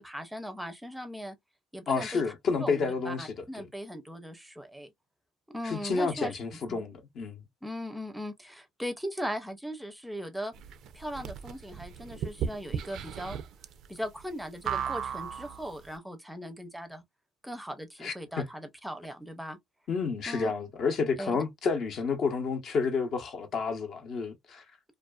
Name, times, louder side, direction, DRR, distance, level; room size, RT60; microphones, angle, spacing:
voice 1, 0.0-1.4 1.7-2.2 2.6-4.9 5.5-6.4 6.7-6.8 7.6-10.5 10.9-13.4 13.9-17.0 17.4-19.6 20.3-20.5 21.2-21.4, equal, 5° right, 0.5 m, -38 dB
voice 2, 1.9-3.3 5.6-7.4 18.0-18.5 19.9-24.6, left 5 dB, 55° left, 0.7 m, -30 dB
sound 1, 10.5-15.8, right 8 dB, 65° right, 0.3 m, -36 dB
2.4 x 2.3 x 2.2 m
supercardioid pair, 90°, 0 cm